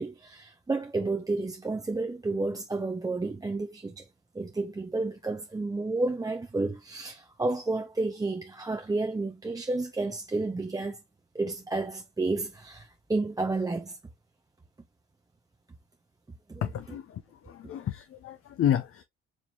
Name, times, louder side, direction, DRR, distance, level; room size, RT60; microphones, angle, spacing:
voice 1, 0.0-4.1 4.3-11.0 11.3-14.0 16.5-16.6, right 3 dB, 10° right, 0.5 m, -31 dB
voice 2, 16.6-19.0, left 10 dB, 45° left, 0.5 m, -30 dB
4.3 x 2.9 x 2.7 m
supercardioid pair, 65°, 31 cm